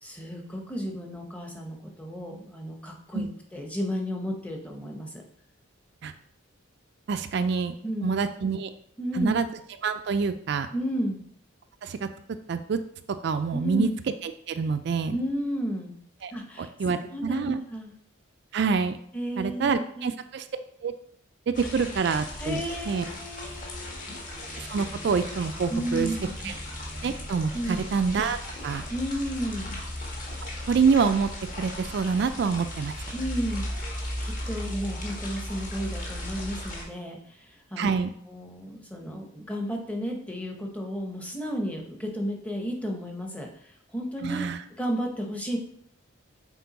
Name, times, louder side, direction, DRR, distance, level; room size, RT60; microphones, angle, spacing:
voice 1, 0.0-5.1 7.8-8.1 9.0-9.3 10.7-11.2 13.5-13.9 15.1-15.9 16.3-16.7 17.1-17.9 19.1-20.1 22.4-24.2 25.7-26.5 27.5-27.8 28.9-29.8 33.1-33.9 34.2-38.0 38.3-44.5 44.8-45.6, equal, 5° left, 1 dB, 0.8 m, -33 dB
voice 2, 7.1-7.8 8.0-8.7 9.2-9.5 9.8-10.7 11.8-12.1 12.5-12.8 13.2-13.9 14.2-15.2 16.2-16.3 16.6-17.6 18.5-19.0 19.4-20.5 20.8-20.9 21.5-23.0 24.6-26.1 26.4-26.5 27.0-28.4 28.6-28.8 30.4-31.3 31.6-32.9 37.8-38.1 44.2-44.6, right 5 dB, 55° right, 9 dB, 0.3 m, -26 dB
sound 1, 21.5-36.8, left 1 dB, 40° left, 1.5 m, -36 dB
6.8 x 4.3 x 4.0 m, 0.66 s
head